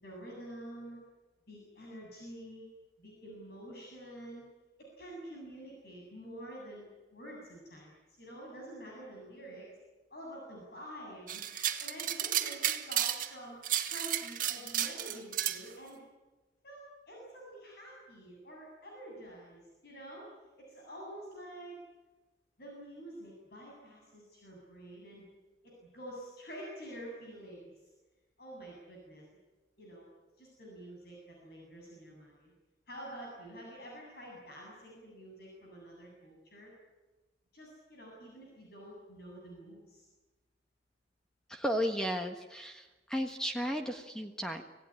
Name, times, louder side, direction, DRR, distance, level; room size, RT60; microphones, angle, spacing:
voice 1, 0.0-1.0 1.5-2.7 3.0-4.5 4.8-9.7 10.1-13.6 13.9-16.0 16.6-16.8 17.1-20.3 20.6-21.8 22.6-25.3 25.6-27.7 28.4-29.2 29.8-30.1 30.4-32.5 32.9-36.7 37.5-40.0, right 1 dB, 60° left, -2 dB, 8.0 m, -48 dB
sound 1, 11.3-13.3 13.6-15.6, right 11 dB, 50° right, 1.9 m, -33 dB
voice 2, 41.5-44.6, equal, 5° left, 4 dB, 1.5 m, -34 dB
26.0 x 17.5 x 9.9 m, 1.2 s
head